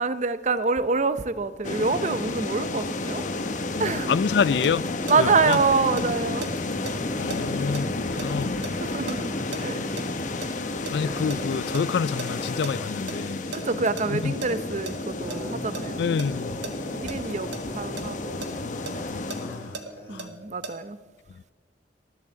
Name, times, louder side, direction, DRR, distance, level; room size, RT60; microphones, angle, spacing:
voice 1, 0.0-3.2 3.8-4.2 5.1-6.5 8.8-9.8 13.5-16.2 16.9-17.5 17.8-18.4 20.1-21.0, right 4 dB, 40° right, 0.6 m, -26 dB
sound 1, 1.6-19.8, left 2 dB, 45° left, 0.9 m, -31 dB
sound 2, 3.0-20.3, left 1 dB, 15° left, 2.9 m, -43 dB
voice 2, 3.8-4.9 5.2-5.6 7.2-8.6 10.9-13.4 14.1-14.3 16.0-16.6 18.6-18.8 19.1-19.8 20.1-20.3, left 6 dB, 70° left, 0.3 m, -27 dB
sound 3, 4.6-5.6 6.0-10.5 10.9-12.7 13.1-13.2 13.5-14.9 15.3-15.8 16.2-18.0 18.4-20.7, right 3 dB, 90° right, 1.4 m, -37 dB
14.5 x 11.5 x 7.3 m
head